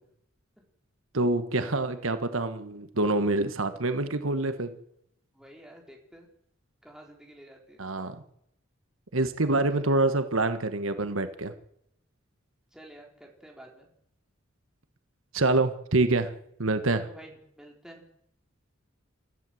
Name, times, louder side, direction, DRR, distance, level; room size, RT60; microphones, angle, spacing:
voice 1, 1.1-4.7 7.8-8.2 9.1-11.5 15.3-16.3 16.6-17.0, right 2 dB, 80° right, 10 dB, 1.5 m, -26 dB
voice 2, 5.3-6.3 6.8-7.8 12.7-13.9 16.9-18.0, right 1 dB, 5° right, 0 dB, 4.3 m, -50 dB
28.5 x 14.0 x 7.9 m, 0.77 s
head